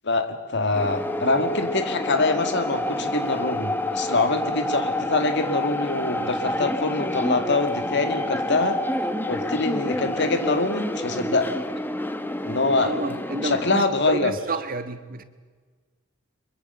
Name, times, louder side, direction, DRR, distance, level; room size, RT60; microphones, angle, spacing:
voice 1, 0.0-8.8 9.3-11.5 12.4-12.9 13.4-14.3, left 3 dB, 60° left, 8 dB, 2.1 m, -24 dB
sound 1, 0.7-13.8, left 1 dB, 10° left, 1.1 m, -28 dB
voice 2, 12.8-15.2, right 3 dB, 45° right, 10 dB, 1.4 m, -30 dB
23.5 x 22.5 x 6.9 m, 1.5 s
head